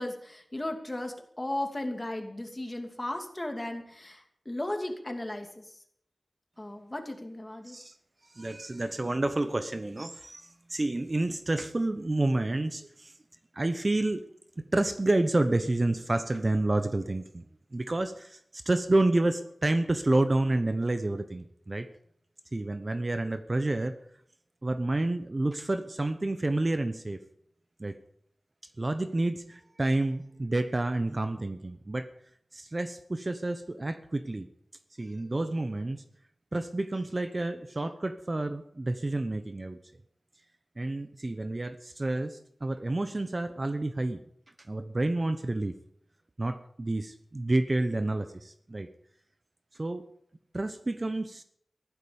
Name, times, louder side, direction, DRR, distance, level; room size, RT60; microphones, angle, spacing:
voice 1, 0.0-5.6 6.6-7.8, left 1 dB, 20° left, 4 dB, 2.8 m, -36 dB
voice 2, 8.3-13.1 13.5-14.2 14.7-17.5 17.7-21.9 22.5-24.0 24.6-27.2 27.8-28.0 28.8-32.1 32.5-34.5 35.0-36.0 36.5-39.8 40.8-44.2 44.7-45.7 46.4-48.9 49.8-50.1 50.5-51.4, right 2 dB, 35° right, 10 dB, 0.9 m, -29 dB
15.0 x 12.0 x 7.0 m, 0.68 s
wide cardioid pair, 85°, 0 cm